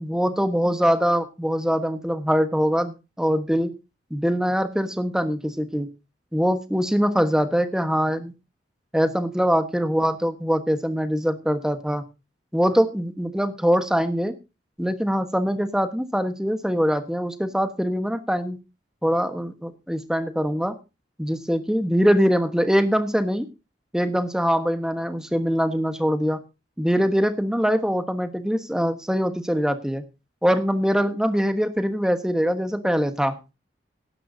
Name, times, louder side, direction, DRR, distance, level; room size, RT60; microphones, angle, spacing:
voice 1, 0.0-3.8 4.1-5.9 6.3-8.3 8.9-12.0 12.5-14.3 14.8-18.6 19.0-20.8 21.2-23.5 23.9-26.4 26.8-30.0 30.4-33.4, equal, 5° right, 8 dB, 1.3 m, -23 dB
17.0 x 12.0 x 2.8 m, 0.28 s
head